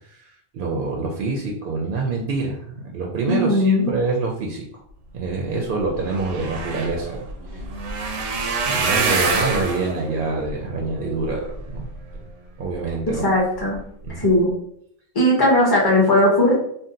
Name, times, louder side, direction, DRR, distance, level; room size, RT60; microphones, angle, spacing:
voice 1, 0.5-4.8 5.1-7.3 7.5-7.6 8.7-11.9 12.6-13.2 14.0-14.3, right 3 dB, 60° right, -1 dB, 0.6 m, -26 dB
voice 2, 3.3-3.9 13.1-13.8 14.1-14.5 15.1-16.5, left 1 dB, 25° left, -2 dB, 0.6 m, -18 dB
sound 1, 5.5-5.6 5.8-12.2 12.7-13.1 13.6-13.8 14.0-14.1, right 4 dB, 90° right, 0.9 m, -26 dB
2.6 x 2.0 x 3.8 m, 0.70 s
omnidirectional pair, 1.2 m